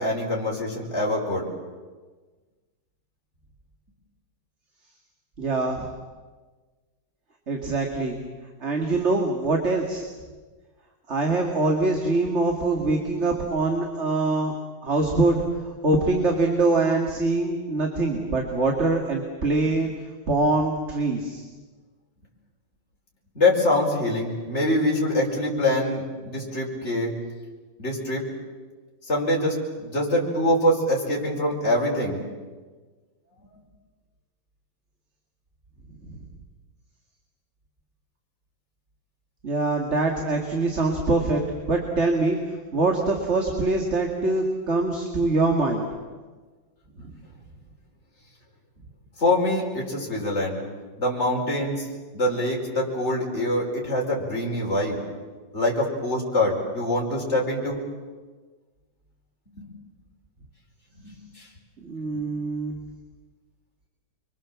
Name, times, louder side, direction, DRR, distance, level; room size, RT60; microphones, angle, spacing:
voice 1, 0.0-1.5 23.4-27.1 27.8-28.2 29.1-32.2 49.2-50.6 51.0-51.9 52.1-55.0 55.5-57.8 59.6-59.7 61.0-61.5 62.1-62.2, left 1 dB, 35° left, -2 dB, 5.3 m, -24 dB
voice 2, 5.4-5.9 7.5-8.2 8.6-10.0 11.1-14.5 14.8-19.9 20.3-21.4 36.0-36.2 39.4-45.9 47.0-47.1 61.8-62.8, right 2 dB, 35° right, 2 dB, 2.6 m, -24 dB
29.0 x 24.0 x 7.5 m, 1.4 s
omnidirectional pair, 2.1 m